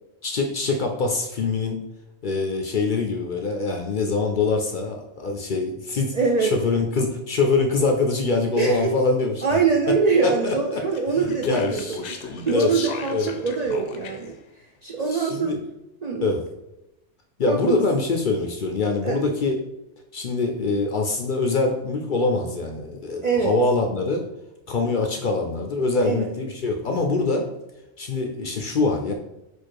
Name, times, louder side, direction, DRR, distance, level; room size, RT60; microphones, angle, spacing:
voice 1, 0.2-1.8 2.2-6.1 6.4-9.4 9.9-10.0 10.2-10.8 11.2-12.0 12.5-12.7 13.1-13.3 15.1-15.6 16.2-16.4 17.4-19.6 20.1-24.2 24.7-27.5 28.0-29.1, left 3 dB, 55° left, 3 dB, 0.6 m, -24 dB
voice 2, 6.1-6.5 8.6-8.9 9.4-11.8 12.2-14.3 14.8-15.6 16.0-16.3 17.4-17.8 19.0-19.2 23.2-23.6 26.0-26.3, right 5 dB, 50° right, 0 dB, 0.5 m, -23 dB
Speech, 10.9-14.4, left 5 dB, 80° left, 0.9 m, -36 dB
4.4 x 2.5 x 4.6 m, 0.91 s
omnidirectional pair, 1.2 m